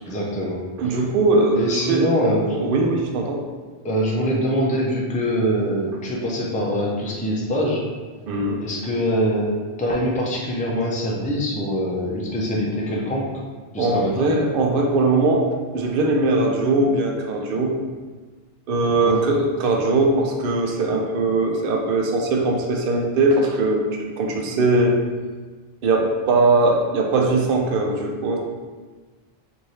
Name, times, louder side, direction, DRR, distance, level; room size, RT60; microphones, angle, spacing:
voice 1, 0.1-1.0 1.5-2.6 3.8-7.8 8.6-13.2 13.7-14.3 19.0-19.2, equal, 10° left, -3 dB, 0.4 m, -24 dB
voice 2, 0.8-2.1 2.5-3.4 8.3-8.6 13.8-15.5 15.7-17.8 18.7-23.8 24.2-25.0 25.8-28.4, right 2 dB, 65° right, 1 dB, 0.7 m, -20 dB
3.1 x 2.6 x 4.1 m, 1.4 s
omnidirectional pair, 1.0 m